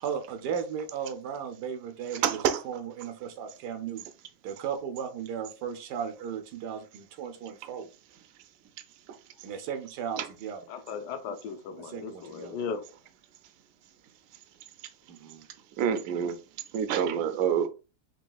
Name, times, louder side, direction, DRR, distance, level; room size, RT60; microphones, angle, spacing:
voice 1, 0.0-4.1 4.4-7.9 9.4-10.6 11.8-12.6 15.1-15.5, right 7 dB, 90° right, 1.2 m, -36 dB
voice 2, 2.2-2.6 7.6-7.7 10.2-10.3 15.8-16.4 16.7-17.7, right 8 dB, 70° right, 0.9 m, -27 dB
voice 3, 10.7-12.8, left 6 dB, 85° left, 1.3 m, -36 dB
5.1 x 3.0 x 2.3 m
omnidirectional pair, 1.8 m